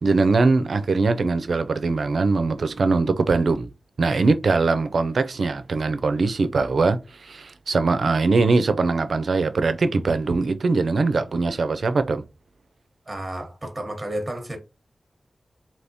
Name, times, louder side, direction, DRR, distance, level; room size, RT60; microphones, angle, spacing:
voice 1, 0.0-3.7 4.0-12.2, right 3 dB, 75° right, 0.4 m, -21 dB
voice 2, 13.1-14.6, right 1 dB, 20° right, 0.9 m, -32 dB
3.4 x 2.7 x 2.7 m
wide cardioid pair, 65°, 0 cm